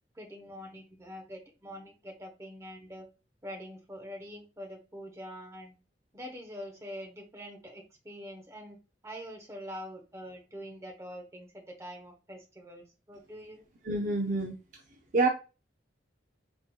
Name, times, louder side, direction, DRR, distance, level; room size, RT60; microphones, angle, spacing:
voice 1, 0.1-3.1 3.4-5.7 6.1-8.8 9.0-13.6, equal, 15° right, 2 dB, 0.9 m, -44 dB
voice 2, 13.8-14.5 15.1-15.3, right 3 dB, 45° right, 2 dB, 0.5 m, -26 dB
4.3 x 3.6 x 2.2 m, 0.31 s
head